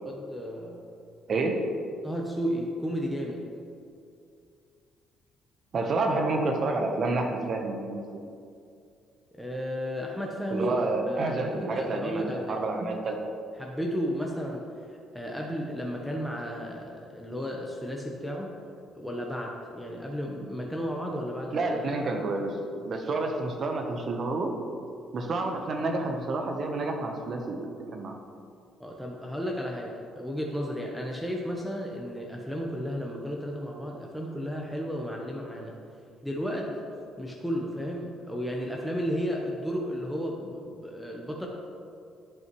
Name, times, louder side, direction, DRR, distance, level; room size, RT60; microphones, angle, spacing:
voice 1, 0.0-0.9 2.0-3.5 9.3-10.7 11.1-12.6 13.6-14.6 14.9-18.6 18.9-21.7 28.8-35.7 36.2-36.8 37.2-41.5, equal, ahead, -1 dB, 0.9 m, -33 dB
voice 2, 1.3-1.7 5.7-8.0 10.5-13.3 21.5-24.5 25.1-28.1, right 2 dB, 50° right, 3 dB, 1.0 m, -29 dB
11.0 x 5.5 x 3.1 m, 2.4 s
supercardioid pair, 65°, 0 cm